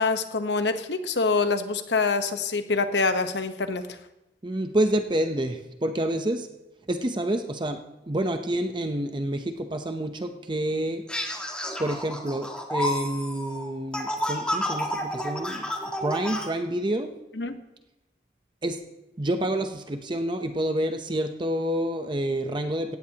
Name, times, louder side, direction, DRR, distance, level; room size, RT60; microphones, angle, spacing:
voice 1, 0.0-3.8 17.4-17.6, left 4 dB, 80° left, 9 dB, 1.0 m, -25 dB
voice 2, 4.4-6.5 6.9-11.0 11.8-15.6 16.0-17.1 18.6-18.8 19.2-23.0, right 1 dB, 25° right, 6 dB, 0.7 m, -28 dB
sound 1, 11.1-16.5, left 1 dB, 5° left, 1.6 m, -30 dB
17.5 x 16.0 x 2.9 m, 0.97 s
head